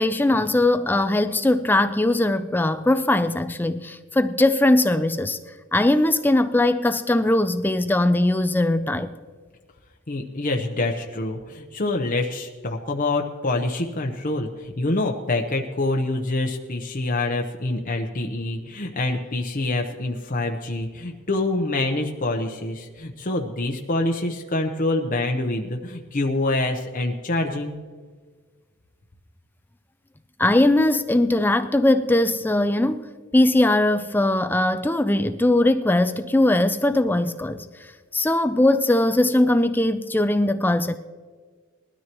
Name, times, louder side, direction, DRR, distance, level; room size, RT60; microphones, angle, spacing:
voice 1, 0.0-5.4 5.7-9.1 30.4-33.1 33.3-37.6 38.1-41.0, left 1 dB, 10° left, 0.4 m, -20 dB
voice 2, 10.1-27.8, left 2 dB, 40° left, 0.9 m, -26 dB
20.5 x 13.0 x 3.0 m
head